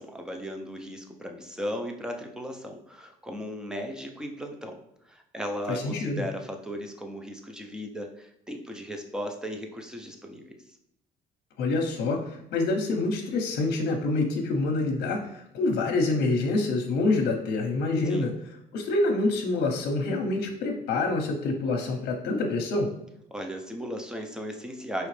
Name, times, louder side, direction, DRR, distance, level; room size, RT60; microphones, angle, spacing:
voice 1, 0.0-4.8 5.1-10.5 18.0-18.3 23.3-25.1, equal, 5° right, 3 dB, 0.7 m, -36 dB
voice 2, 5.7-6.2 11.6-18.3 18.7-22.9, left 3 dB, 75° left, 2 dB, 0.8 m, -26 dB
4.9 x 3.1 x 3.2 m, 0.79 s
cardioid pair, 110°, 17 cm